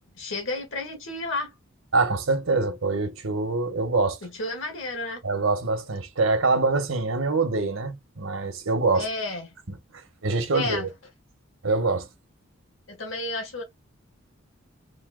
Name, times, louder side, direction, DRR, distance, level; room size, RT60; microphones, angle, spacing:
voice 1, 0.2-1.5 4.2-5.2 8.9-9.5 10.5-10.9 12.9-13.6, left 2 dB, 70° left, 1.9 m, -31 dB
voice 2, 1.9-4.2 5.2-9.1 9.7-9.8 10.2-10.9 11.6-12.1, right 3 dB, 85° right, 1.2 m, -24 dB
4.2 x 2.8 x 3.8 m
head